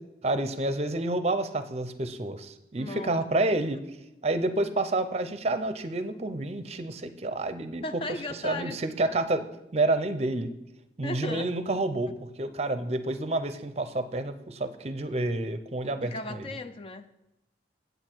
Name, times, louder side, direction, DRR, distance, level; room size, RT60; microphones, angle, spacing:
voice 1, 0.2-3.8 4.2-7.8 8.4-9.5 9.7-10.5 11.0-12.1 12.4-16.5, right 2 dB, 35° right, 10 dB, 0.6 m, -29 dB
voice 2, 2.8-3.1 7.8-8.8 11.0-11.5 16.0-17.1, left 2 dB, 30° left, 9 dB, 0.4 m, -36 dB
8.8 x 7.9 x 4.5 m, 0.92 s
head